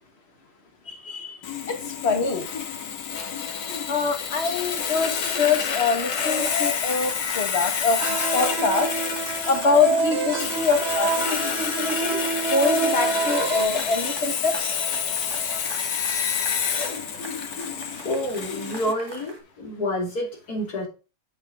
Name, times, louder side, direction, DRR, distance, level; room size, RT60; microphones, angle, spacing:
voice 1, 0.9-1.4 1.7-2.5 3.9-8.0 8.3-8.9 9.4-12.2 12.5-14.8, left 4 dB, 40° left, 1.6 m, -24 dB
Sawing, 1.4-18.9, left 7 dB, 85° left, 1.8 m, -28 dB
sound 1, 4.8-19.4, right 1 dB, 15° right, 2.0 m, -43 dB
sound 2, 8.0-13.6, right 4 dB, 45° right, 1.0 m, -27 dB
voice 2, 17.7-20.9, left 1 dB, 60° left, 3.3 m, -29 dB
7.6 x 7.1 x 3.5 m
omnidirectional pair, 1.9 m